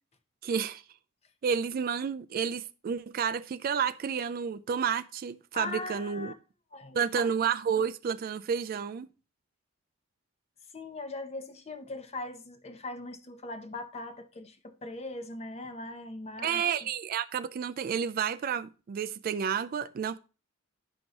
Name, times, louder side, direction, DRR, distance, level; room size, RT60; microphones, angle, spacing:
voice 1, 0.4-0.8 1.4-6.3 6.9-9.1 16.4-20.2, right 7 dB, 45° right, 0.3 m, -30 dB
voice 2, 5.5-6.3 6.7-7.3 10.7-16.6, left 2 dB, 30° left, 0.7 m, -40 dB
11.0 x 5.3 x 2.9 m
head